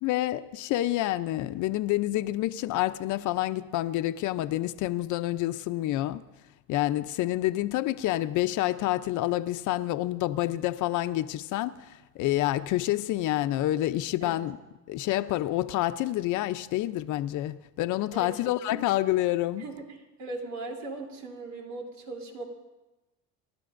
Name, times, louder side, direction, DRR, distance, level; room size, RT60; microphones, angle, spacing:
voice 1, 0.0-6.2 6.7-14.6 14.9-19.6, left 15 dB, 55° left, 0.6 m, -28 dB
voice 2, 20.2-22.4, right 3 dB, 75° right, 3.3 m, -38 dB
29.5 x 13.0 x 2.6 m
cardioid pair, 130°, 36 cm